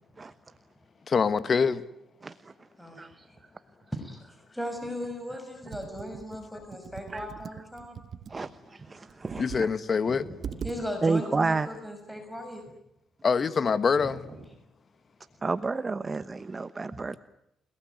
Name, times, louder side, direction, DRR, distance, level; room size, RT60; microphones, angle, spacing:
voice 1, 1.1-1.8 6.5-6.6 9.4-10.3 13.2-14.3, left 5 dB, 45° left, 1.7 m, -25 dB
voice 2, 2.2-2.5 3.0-3.3 7.1-7.2 8.3-9.7 11.0-11.7 15.4-17.2, right 4 dB, 30° right, 1.0 m, -30 dB
voice 3, 3.9-7.9 8.4-8.5 10.1-12.6 14.2-14.3, equal, ahead, 6.2 m, -37 dB
Computer keyboard, 5.7-8.4 9.1-9.8 10.1-10.2 10.4-10.8, right 8 dB, 55° right, 1.3 m, -41 dB
30.0 x 19.0 x 9.5 m
cardioid pair, 90°, 0 cm